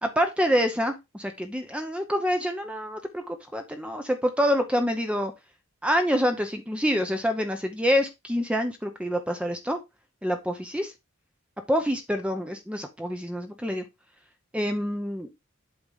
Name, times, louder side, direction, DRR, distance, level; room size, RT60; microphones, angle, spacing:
voice 1, 0.0-5.3 5.8-9.8 10.2-10.9 11.7-13.8 14.5-15.3, equal, 5° right, 5 dB, 0.7 m, -26 dB
8.2 x 3.1 x 5.5 m, 0.22 s
head